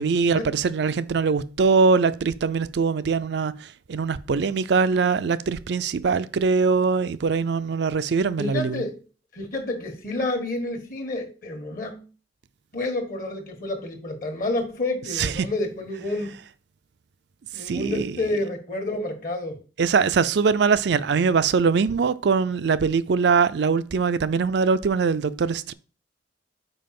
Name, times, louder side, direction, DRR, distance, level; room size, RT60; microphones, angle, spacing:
voice 1, 0.0-8.8 15.2-15.5 17.6-18.1 19.8-25.7, right 5 dB, 65° right, 0.4 m, -22 dB
voice 2, 8.4-9.0 9.3-12.0 12.7-16.3 17.5-19.6, left 2 dB, 50° left, 1.5 m, -29 dB
5.3 x 4.7 x 5.9 m
head